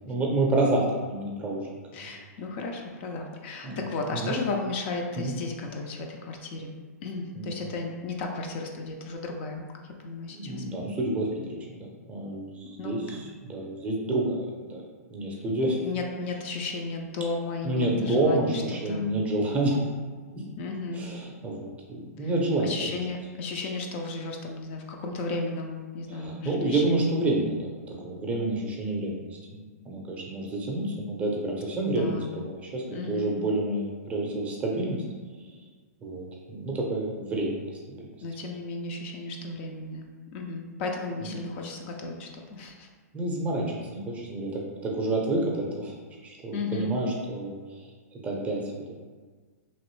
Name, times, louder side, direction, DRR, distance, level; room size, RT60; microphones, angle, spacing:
voice 1, 0.1-0.8 1.1-1.6 2.0-2.1 3.6-3.8 4.1-4.3 5.2-5.4 7.4-7.5 10.3-14.8 15.1-15.8 17.6-19.9 20.3-20.4 20.9-23.0 26.1-29.2 29.5-35.0 35.4-35.6 36.0-37.5 37.9-38.0 43.1-45.9 46.2-48.9, right 2 dB, 15° right, -2 dB, 0.6 m, -29 dB
voice 2, 1.9-6.7 7.0-10.6 12.8-13.2 15.8-18.6 18.9-19.1 20.6-21.0 22.2-22.3 22.6-27.0 31.9-32.3 32.9-33.4 38.2-42.9 46.5-46.9, left 3 dB, 45° left, 2 dB, 0.4 m, -34 dB
3.0 x 2.6 x 3.1 m, 1.5 s
hypercardioid pair, 135°, 9 cm